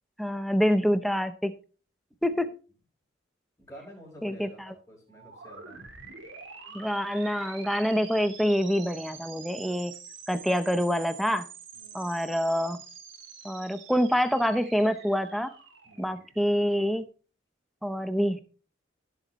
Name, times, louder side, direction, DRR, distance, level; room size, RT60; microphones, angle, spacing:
voice 1, 0.2-1.5 2.2-2.6 4.2-4.5 6.7-9.9 10.3-11.5 11.9-12.8 13.4-15.5 16.0-17.1 17.8-18.4, equal, ahead, 10 dB, 0.7 m, -26 dB
voice 2, 3.6-5.8 11.7-12.1 15.8-16.2, equal, 15° left, -6 dB, 5.2 m, -50 dB
sound 1, 5.1-16.8, right 6 dB, 85° right, 3.0 m, -47 dB
16.5 x 8.0 x 3.1 m, 0.36 s
head